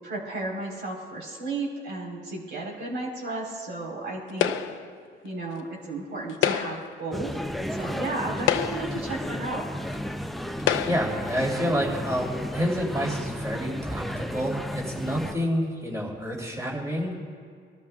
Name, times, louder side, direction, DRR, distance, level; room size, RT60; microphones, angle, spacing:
voice 1, 0.0-4.5 5.2-9.7, right 2 dB, 60° right, -2 dB, 4.0 m, -33 dB
sound 1, 4.4-4.9 6.3-6.9 7.8-7.9 8.4-9.0 9.9-10.0 10.6-11.2, left 10 dB, 90° left, 0.7 m, -27 dB
sound 2, 7.1-15.4, equal, ahead, 0.6 m, -33 dB
voice 2, 10.8-17.3, equal, 15° right, -3 dB, 3.1 m, -28 dB
24.0 x 13.0 x 2.3 m, 2.1 s
cardioid pair, 90°, 20 cm